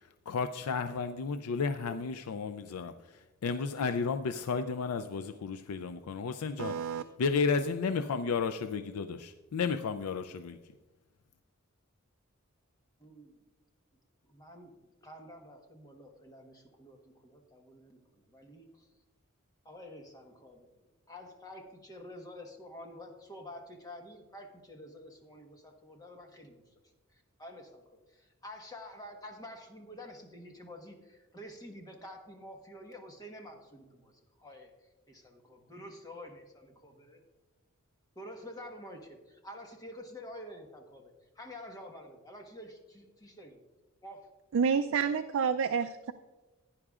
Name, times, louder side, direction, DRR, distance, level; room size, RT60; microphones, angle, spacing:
voice 1, 0.0-10.7, left 5 dB, 85° left, 9 dB, 0.4 m, -33 dB
voice 2, 6.6-7.0 44.5-46.1, right 6 dB, 65° right, 9 dB, 0.4 m, -29 dB
voice 3, 13.0-13.4 14.3-18.9 19.6-20.7 21.1-26.6 27.1-34.7 35.1-37.2 38.1-43.6 44.0-44.2, left 1 dB, 15° left, 2 dB, 1.3 m, -49 dB
15.5 x 9.9 x 2.4 m, 1.2 s
head